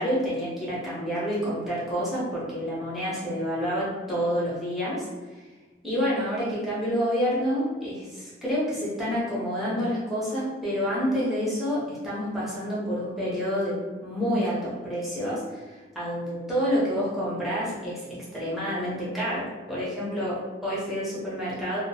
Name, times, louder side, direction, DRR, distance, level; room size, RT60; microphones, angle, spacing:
voice 1, 0.0-5.1 5.8-21.8, equal, ahead, -9 dB, 0.7 m, -28 dB
2.2 x 2.1 x 2.7 m, 1.3 s
head